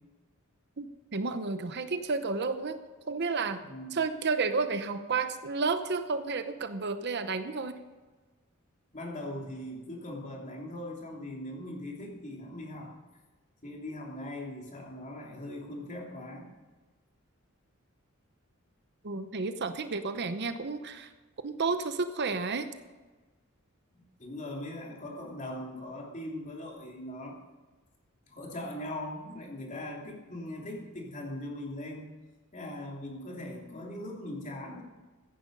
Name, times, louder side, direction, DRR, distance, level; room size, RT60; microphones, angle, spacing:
voice 1, 0.8-2.8 3.1-3.6 3.9-7.8 19.0-21.1 21.4-22.7, right 4 dB, 55° right, 10 dB, 0.8 m, -31 dB
voice 2, 3.7-4.0 8.9-12.9 13.6-16.5 23.9-27.4 28.3-32.1 32.5-34.8, left 1 dB, 35° left, -1 dB, 2.9 m, -40 dB
15.0 x 10.5 x 5.4 m, 1.3 s
head